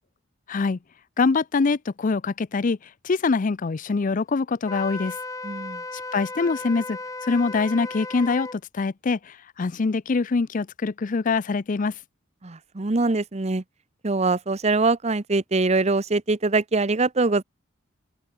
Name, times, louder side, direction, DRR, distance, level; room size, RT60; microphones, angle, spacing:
voice 1, 0.5-0.8 1.2-2.8 3.0-5.2 6.1-11.9, left 4 dB, 40° left, 0.5 m, -24 dB
Wind instrument woodwind instrument, 4.6-8.6, left 3 dB, 15° left, 1.3 m, -35 dB
voice 2, 5.4-5.8 12.4-13.6 14.0-17.4, right 3 dB, 35° right, 0.8 m, -23 dB
head